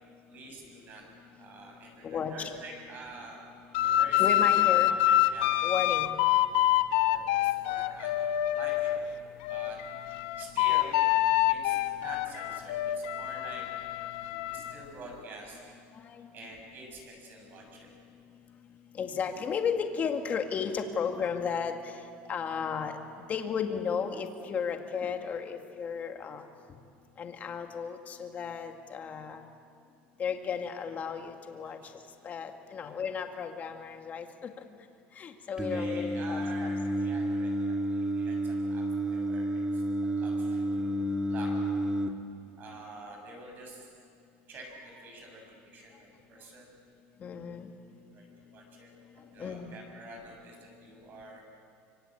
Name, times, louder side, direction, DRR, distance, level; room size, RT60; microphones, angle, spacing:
voice 1, 0.3-1.0 1.4-3.4 3.8-4.5 4.8-5.6 7.0-9.1 9.5-9.8 10.4-11.0 11.5-13.6 14.0-14.1 14.4-15.7 16.3-17.9 31.6-31.9 35.7-39.8 40.1-41.5 42.6-43.9 44.5-46.7 48.1-51.4, right 2 dB, 35° right, 1 dB, 7.3 m, -47 dB
voice 2, 2.0-2.5 4.2-5.0 5.6-6.1 15.9-16.3 18.9-22.0 22.3-23.0 23.3-26.4 27.2-29.4 30.2-31.8 32.2-34.5 35.2-36.7 47.2-47.7 49.4-49.7, left 6 dB, 30° left, 5 dB, 2.1 m, -34 dB
sound 1, 3.7-9.0 9.4-14.7, left 14 dB, 80° left, 1.0 m, -26 dB
Singing, 35.6-42.1, right 1 dB, 10° right, 1.7 m, -30 dB
25.0 x 25.0 x 8.7 m, 2.4 s
cardioid pair, 150°, 5 cm